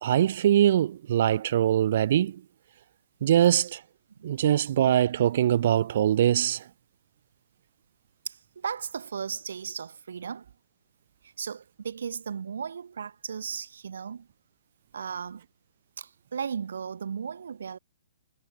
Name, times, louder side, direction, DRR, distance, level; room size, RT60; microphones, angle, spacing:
voice 1, 0.0-2.4 3.2-3.8 4.2-6.6, right 11 dB, 35° right, 0.7 m, -22 dB
voice 2, 8.3-10.5 11.4-14.3 14.9-15.4 16.0-17.8, right 6 dB, 70° right, 7.1 m, -36 dB
hypercardioid pair, 180°, 0 cm